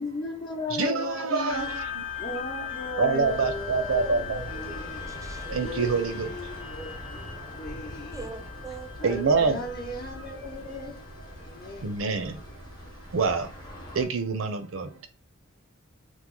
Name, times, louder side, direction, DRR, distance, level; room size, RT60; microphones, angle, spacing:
voice 1, 0.0-1.8 2.2-5.1 5.5-7.2 7.6-8.3 9.0-11.0 11.4-11.9, left 2 dB, 50° left, 0.7 m, -36 dB
voice 2, 0.8-2.0 3.0-4.4 5.5-6.3 9.0-9.6 11.8-12.3 13.1-13.5 14.0-15.1, right 4 dB, 80° right, 0.5 m, -26 dB
sound 1, 1.5-12.4, left 8 dB, 80° left, 1.1 m, -40 dB
sound 2, 3.2-14.1, equal, 20° left, 0.8 m, -42 dB
voice 3, 4.0-5.5 8.1-9.2, right 2 dB, 15° right, 0.3 m, -42 dB
3.0 x 2.0 x 3.7 m
head